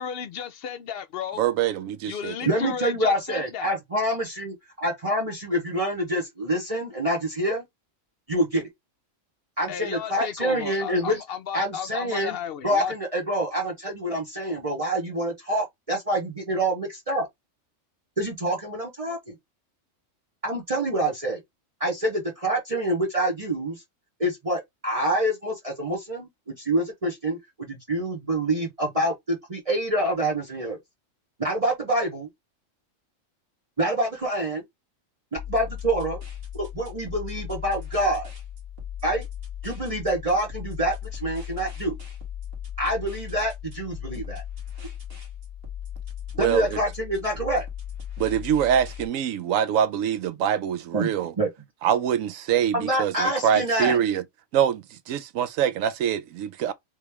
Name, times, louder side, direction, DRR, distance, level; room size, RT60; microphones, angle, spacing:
voice 1, 0.0-1.4 2.1-3.7 9.7-12.9, left 8 dB, 65° left, 0.6 m, -34 dB
voice 2, 1.4-2.4 46.3-46.8 48.2-51.3 51.8-54.2 54.5-56.7, right 9 dB, 85° right, 1.0 m, -24 dB
voice 3, 2.4-7.6 8.3-8.6 9.6-11.2 11.5-12.4 12.6-17.3 18.2-19.3 20.4-21.4 21.8-23.8 24.2-26.3 26.6-30.8 31.4-32.3 33.8-34.6 35.5-36.2 36.5-38.3 39.0-39.3 39.6-41.9 42.8-44.4 46.4-47.6 50.9-51.5 52.7-54.0, right 1 dB, 30° right, 0.8 m, -26 dB
sound 1, 35.4-49.1, left 9 dB, 50° right, 1.7 m, -37 dB
3.3 x 3.0 x 3.3 m
omnidirectional pair, 1.3 m